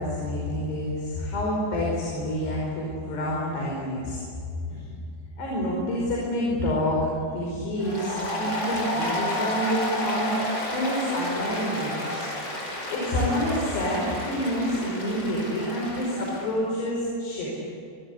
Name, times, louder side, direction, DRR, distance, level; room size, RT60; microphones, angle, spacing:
voice 1, 0.0-4.2 4.7-4.8 5.4-12.3 12.9-17.5, equal, 65° left, -3 dB, 7.2 m, -28 dB
Applause, 7.8-16.5, left 1 dB, 25° left, 6.1 m, -31 dB
27.5 x 22.0 x 9.9 m, 2.4 s
omnidirectional pair, 5.2 m